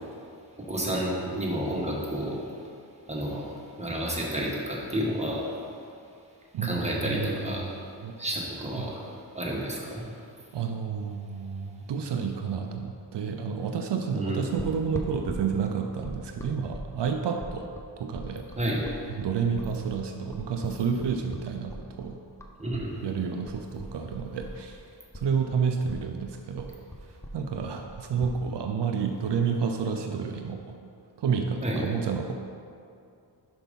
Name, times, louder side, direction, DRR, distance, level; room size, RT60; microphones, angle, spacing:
voice 1, 0.7-2.5 3.1-5.6 6.6-7.7 8.2-9.1 9.3-10.1 14.1-14.4 18.6-18.8 22.6-22.9 31.6-31.8, right 1 dB, 15° right, -4 dB, 1.4 m, -30 dB
voice 2, 6.5-8.2 8.8-9.1 10.5-17.7 18.0-18.5 19.1-22.2 23.0-24.8 25.1-26.7 27.0-30.8 31.2-32.3, right 6 dB, 70° right, 4 dB, 0.6 m, -30 dB
sound 1, 14.6-22.9 23.1-24.8 25.1-28.4, equal, 5° left, 0.6 m, -40 dB
5.9 x 5.1 x 5.3 m, 2.5 s
wide cardioid pair, 85°, 43 cm